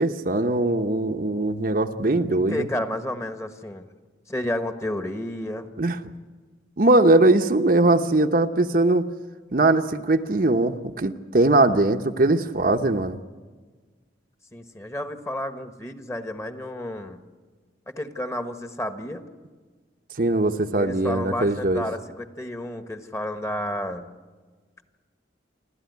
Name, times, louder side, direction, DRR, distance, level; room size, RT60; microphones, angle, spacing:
voice 1, 0.0-2.7 5.8-6.0 6.8-9.1 9.5-13.2 20.2-21.8, right 2 dB, 50° right, 5 dB, 0.9 m, -21 dB
voice 2, 2.3-3.8 4.3-5.7 14.5-17.2 18.0-19.3 20.8-24.1, left 1 dB, 15° left, 7 dB, 1.3 m, -31 dB
29.5 x 12.5 x 9.4 m, 1.4 s
head